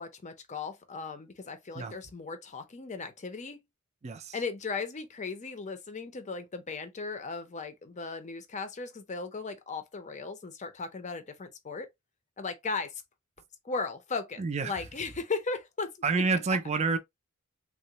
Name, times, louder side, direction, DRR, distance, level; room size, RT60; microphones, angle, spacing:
voice 1, 0.0-3.6 4.3-11.9 12.4-13.0 13.6-16.2, left 4 dB, 35° left, 0.6 m, -37 dB
voice 2, 4.0-4.4 14.4-14.7 16.0-17.0, right 4 dB, 30° right, 0.4 m, -28 dB
3.7 x 2.0 x 2.8 m
head